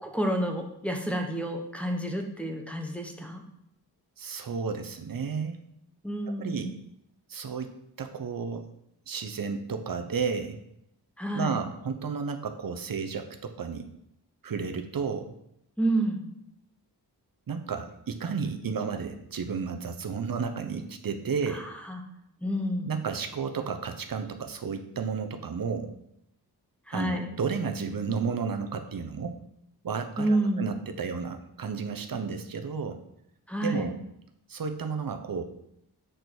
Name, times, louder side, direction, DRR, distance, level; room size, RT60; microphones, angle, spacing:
voice 1, 0.0-3.4 6.0-6.7 11.2-11.6 15.8-16.2 21.5-21.6 21.9-22.0 22.4-22.9 26.9-27.3 30.2-30.6 33.5-33.9, right 1 dB, 5° left, 2 dB, 0.9 m, -29 dB
voice 2, 4.2-5.6 6.4-6.7 7.3-7.7 8.0-8.7 9.1-10.6 11.3-13.9 14.4-15.3 17.5-21.7 22.9-25.9 26.9-29.4 29.8-33.0 33.6-34.0 34.5-35.4, right 5 dB, 55° right, 6 dB, 0.9 m, -32 dB
6.7 x 5.1 x 6.2 m, 0.78 s
wide cardioid pair, 145°, 40 cm